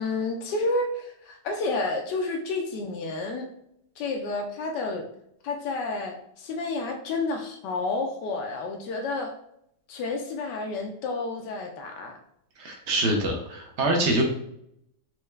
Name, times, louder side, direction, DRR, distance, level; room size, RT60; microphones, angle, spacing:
voice 1, 0.0-3.5 4.0-5.1 5.4-9.3 9.9-12.2, left 3 dB, 85° left, 3 dB, 1.2 m, -30 dB
voice 2, 12.6-14.2, right 1 dB, 55° right, 1 dB, 0.8 m, -25 dB
4.4 x 2.3 x 3.1 m, 0.76 s
omnidirectional pair, 1.8 m